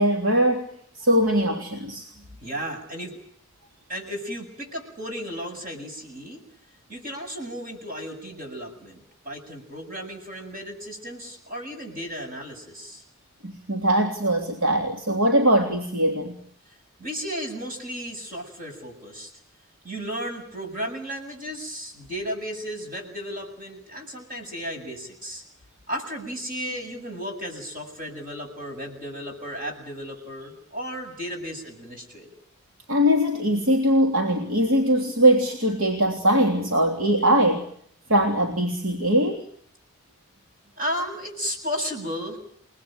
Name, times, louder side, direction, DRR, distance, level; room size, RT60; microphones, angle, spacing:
voice 1, 0.0-2.1 13.4-16.4 32.9-37.7 38.1-39.5, right 1 dB, 75° right, 2 dB, 3.3 m, -21 dB
voice 2, 2.4-3.2 3.9-6.4 6.9-13.0 17.0-19.3 19.8-25.4 25.9-32.3 40.8-42.4, equal, 40° right, 3 dB, 7.7 m, -34 dB
30.0 x 19.5 x 9.1 m, 0.67 s
head